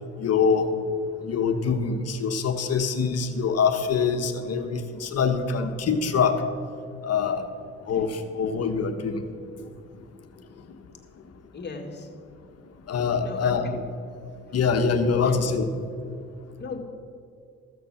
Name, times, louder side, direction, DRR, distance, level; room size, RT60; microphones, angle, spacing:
voice 1, 0.2-0.7 1.2-6.4 7.0-7.4 7.9-9.2 12.9-13.8 14.5-15.7, left 5 dB, 55° left, 7 dB, 1.1 m, -24 dB
voice 2, 11.5-12.1 13.2-13.6 15.1-15.4 16.6-16.8, left 4 dB, 35° left, 2 dB, 1.9 m, -36 dB
14.0 x 6.6 x 6.4 m, 2.4 s
cardioid pair, 90°, 30 cm